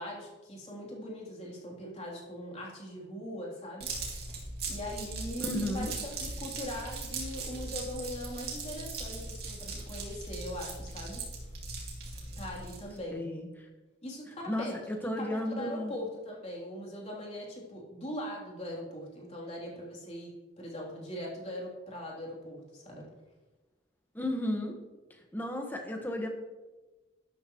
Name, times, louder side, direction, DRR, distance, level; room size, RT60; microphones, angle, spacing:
voice 1, 0.0-3.9 4.7-11.2 12.4-13.2 14.0-14.8 15.0-23.1, left 1 dB, 35° left, -3 dB, 3.3 m, -41 dB
sound 1, 3.8-13.0, right 3 dB, 55° right, 2.8 m, -39 dB
voice 2, 5.4-5.9 13.1-13.5 14.5-15.9 24.1-24.7 25.3-26.3, left 1 dB, 10° left, 2 dB, 1.4 m, -33 dB
12.0 x 12.0 x 3.1 m, 1.2 s
head